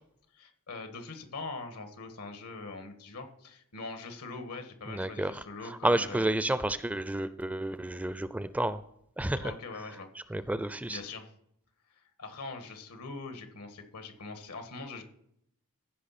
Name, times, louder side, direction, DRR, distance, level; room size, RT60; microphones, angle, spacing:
voice 1, 0.3-6.3 9.4-10.3 10.9-11.3 11.9-15.0, left 3 dB, 90° left, 6 dB, 1.6 m, -42 dB
voice 2, 4.9-5.3 5.8-8.8 9.2-9.4 10.3-11.0, right 1 dB, 5° right, 13 dB, 0.4 m, -30 dB
15.0 x 5.9 x 4.2 m, 0.73 s
head